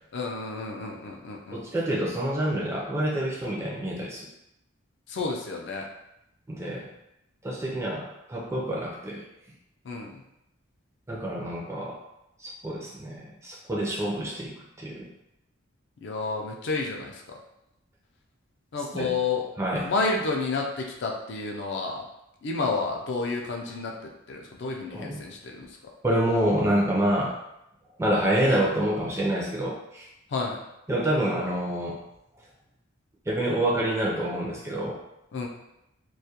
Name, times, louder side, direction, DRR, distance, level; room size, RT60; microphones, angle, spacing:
voice 1, 0.1-1.6 5.1-5.9 9.9-10.2 16.0-17.2 18.7-19.5 19.8-22.0 22.4-23.9 24.3-25.7 30.3-30.6 35.3-35.5, left 3 dB, 55° left, 1 dB, 0.4 m, -30 dB
voice 2, 1.5-4.3 6.5-6.9 7.4-9.2 11.1-12.0 12.4-15.1 18.9-19.1 19.6-19.9 24.9-25.2 26.0-27.3 28.0-30.1 30.9-32.0 33.3-35.0, right 1 dB, 15° right, -4 dB, 0.4 m, -27 dB
2.3 x 2.1 x 2.7 m, 0.84 s
head